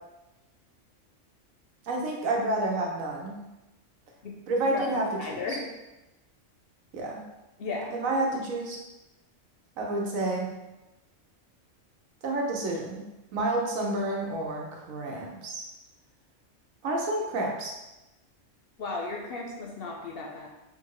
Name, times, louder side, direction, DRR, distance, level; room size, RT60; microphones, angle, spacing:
voice 1, 1.8-3.4 4.5-5.6 6.9-7.2 7.9-8.8 9.8-10.5 12.2-13.0 13.3-15.6 16.8-17.7, right 2 dB, 90° right, -1 dB, 1.3 m, -29 dB
voice 2, 4.7-5.6 7.6-7.9 18.8-20.5, left 3 dB, 60° left, -1 dB, 0.7 m, -35 dB
3.5 x 2.6 x 4.6 m, 1.0 s
omnidirectional pair, 1.4 m